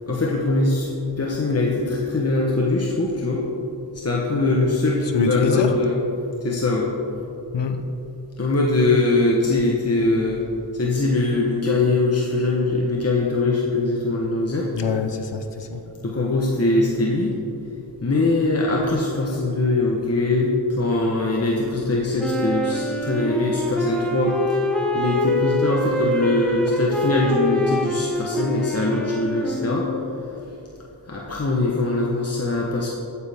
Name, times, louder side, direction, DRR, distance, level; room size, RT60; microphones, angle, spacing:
voice 1, 0.1-3.4 3.9-6.0 6.4-6.9 8.4-10.5 10.7-14.7 16.0-17.4 18.0-24.4 24.9-29.9 31.0-32.9, left 2 dB, 35° left, -3 dB, 1.2 m, -22 dB
voice 2, 5.1-5.7 7.5-7.9 14.7-15.8, left 5 dB, 70° left, 6 dB, 0.8 m, -24 dB
Wind instrument woodwind instrument, 22.2-30.2, left 1 dB, ahead, 1.2 m, -25 dB
14.0 x 9.2 x 3.6 m, 3.0 s
wide cardioid pair, 80°, 44 cm